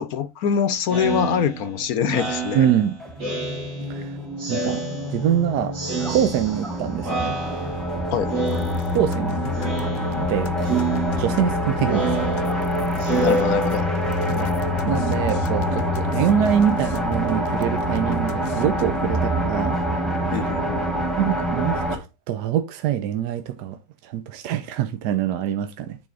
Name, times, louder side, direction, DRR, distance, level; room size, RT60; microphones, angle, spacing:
voice 1, 0.0-2.7 8.1-8.3 13.2-13.9 20.3-21.0, left 8 dB, 65° left, 1.0 m, -24 dB
Speech synthesizer, 0.9-4.0 4.4-5.4 5.7-6.8 7.0-8.0 8.3-9.2 9.5-10.3 10.6-14.2, right 3 dB, 50° right, 2.7 m, -28 dB
voice 2, 2.5-3.0 3.9-4.2 4.5-4.8 5.1-5.7 6.1-7.4 8.9-9.5 10.0-10.8 11.2-12.2 14.3-14.5 14.9-19.8 20.3-20.5 21.2-26.0, right 10 dB, 70° right, 1.2 m, -24 dB
sound 1, 3.0-22.0, right 1 dB, ahead, 1.2 m, -26 dB
sound 2, 8.5-19.1, left 13 dB, 85° left, 1.3 m, -31 dB
10.0 x 4.0 x 3.8 m
omnidirectional pair, 1.9 m